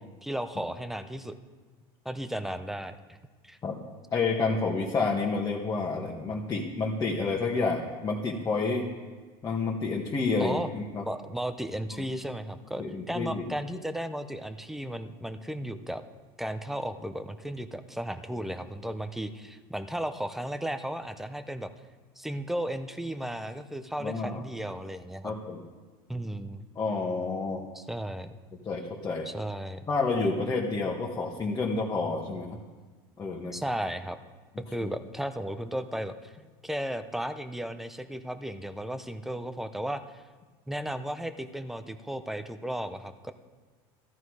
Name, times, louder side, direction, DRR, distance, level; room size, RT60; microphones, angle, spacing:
voice 1, 0.2-1.3 2.0-3.2 3.4-3.6 10.4-10.7 11.1-16.0 16.4-21.7 22.2-25.3 26.1-26.6 27.7-28.3 29.3-29.8 33.5-34.2 34.6-36.3 36.6-40.0 40.7-43.3, right 1 dB, ahead, 10 dB, 0.7 m, -35 dB
voice 2, 4.1-8.9 9.4-11.0 11.9-12.1 12.8-13.4 24.0-24.4 25.2-25.6 26.7-27.6 28.6-29.3 29.9-32.5 33.2-33.5 34.8-34.9, left 3 dB, 25° left, -3 dB, 1.5 m, -29 dB
14.0 x 11.0 x 4.8 m, 1.4 s
supercardioid pair, 120°, 13 cm